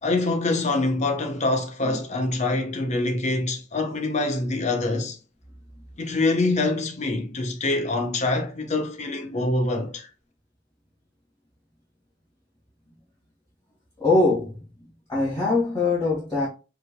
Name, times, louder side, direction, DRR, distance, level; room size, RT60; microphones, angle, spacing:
voice 1, 0.0-5.2 6.0-10.1, left 2 dB, 40° left, 1.0 m, -25 dB
voice 2, 14.0-14.6 15.1-16.5, left 3 dB, 20° left, 2.0 m, -22 dB
5.5 x 3.9 x 2.2 m
head